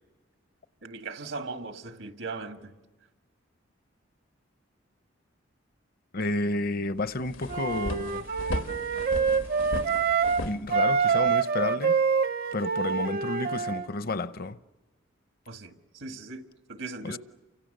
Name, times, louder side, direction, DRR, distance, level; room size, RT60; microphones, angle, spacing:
voice 1, 0.8-2.7 15.5-16.4 16.7-17.2, right 3 dB, 85° right, 1.8 m, -38 dB
voice 2, 6.1-8.3 10.4-12.0 12.5-14.6 17.0-17.2, left 2 dB, 50° left, 0.7 m, -31 dB
sound 1, 6.7-6.8 7.1-11.3, left 1 dB, 85° left, 1.4 m, -36 dB
Wind instrument woodwind instrument, 7.5-10.4 10.7-13.9, right 6 dB, 50° right, 0.7 m, -26 dB
29.5 x 25.0 x 6.7 m
head